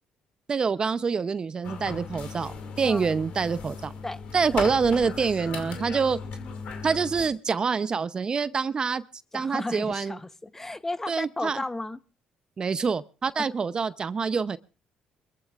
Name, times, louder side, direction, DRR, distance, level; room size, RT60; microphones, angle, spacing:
voice 1, 0.5-3.9 4.3-6.2 6.8-9.0 9.3-10.2 11.1-11.6 12.6-14.6, right 5 dB, 40° right, 0.7 m, -26 dB
sound 1, 1.6-7.3, left 5 dB, 70° left, 2.4 m, -37 dB
voice 2, 9.3-12.0 13.4-13.5, left 2 dB, 15° left, 0.9 m, -34 dB
24.5 x 14.5 x 2.5 m
supercardioid pair, 70°, 2 cm